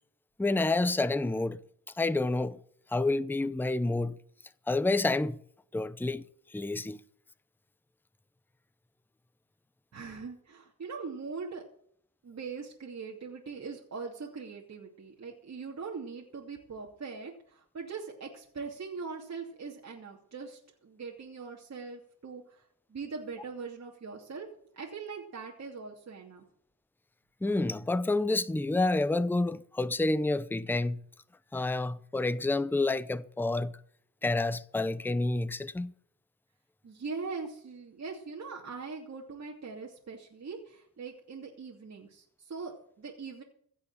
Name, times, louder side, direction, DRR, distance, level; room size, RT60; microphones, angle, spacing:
voice 1, 0.4-1.6 2.0-2.6 2.9-4.2 4.7-5.4 5.7-6.2 6.5-7.0 27.4-31.0 31.5-33.8 34.2-35.9, left 2 dB, 5° left, 0.7 m, -29 dB
voice 2, 9.9-11.6 12.2-22.6 22.9-24.5 24.7-26.4 36.8-43.4, right 4 dB, 50° right, 2.8 m, -41 dB
16.0 x 6.2 x 8.9 m
cardioid pair, 95°, 34 cm